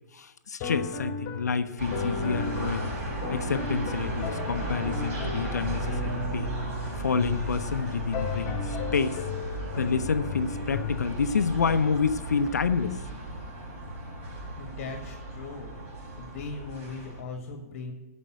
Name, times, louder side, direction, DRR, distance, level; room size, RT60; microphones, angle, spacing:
voice 1, 0.1-2.9 3.3-6.7 7.0-9.2 9.8-13.0, left 5 dB, 80° left, 11 dB, 0.8 m, -28 dB
sound 1, 0.6-11.0, left 5 dB, 35° left, 1.8 m, -35 dB
sound 2, 1.8-17.2, right 2 dB, 45° right, 4.4 m, -35 dB
voice 2, 14.6-15.8 16.2-17.9, left 4 dB, 55° left, 4 dB, 1.5 m, -39 dB
12.5 x 5.4 x 7.9 m, 1.1 s
hypercardioid pair, 120°, 9 cm